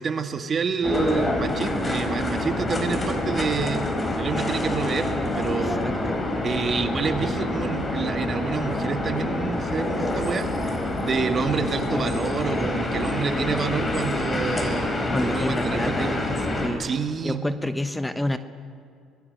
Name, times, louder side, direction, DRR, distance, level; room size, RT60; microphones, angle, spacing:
voice 1, 0.0-3.9 4.2-5.8 6.4-10.5 11.0-16.2 16.8-17.4, right 5 dB, 45° right, 7 dB, 1.9 m, -28 dB
sound 1, 0.8-16.7, left 1 dB, 25° left, 4.6 m, -27 dB
voice 2, 5.6-6.3 15.1-16.1 16.6-16.8 17.2-18.4, left 1 dB, 10° left, 10 dB, 1.1 m, -29 dB
25.0 x 20.5 x 6.6 m, 2.5 s
supercardioid pair, 70°, 0 cm